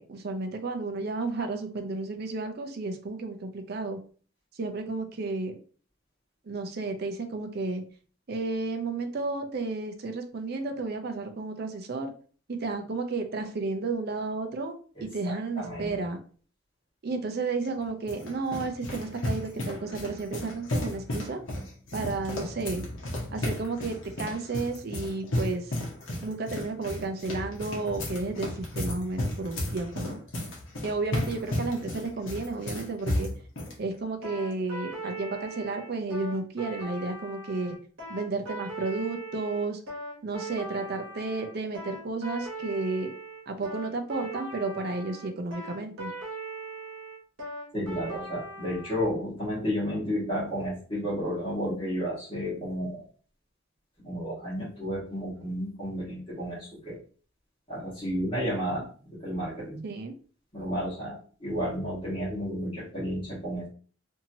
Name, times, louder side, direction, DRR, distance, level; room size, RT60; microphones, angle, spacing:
voice 1, 0.0-4.0 4.6-5.5 6.4-7.8 8.3-12.1 12.5-14.7 15.0-16.2 17.0-21.4 21.9-22.9 23.3-25.8 26.2-30.2 30.8-33.3 33.8-37.8 38.1-39.8 40.2-43.1 43.5-46.1 59.8-60.1, right 3 dB, 50° right, 5 dB, 0.5 m, -32 dB
voice 2, 15.0-16.0 47.7-53.0 54.0-57.0 57.7-59.8 60.5-63.7, equal, 25° left, -8 dB, 1.2 m, -32 dB
sound 1, 17.6-33.8, left 1 dB, 70° left, 0.9 m, -34 dB
sound 2, 34.2-49.1, right 2 dB, 65° right, 1.1 m, -40 dB
2.9 x 2.7 x 2.6 m, 0.42 s
head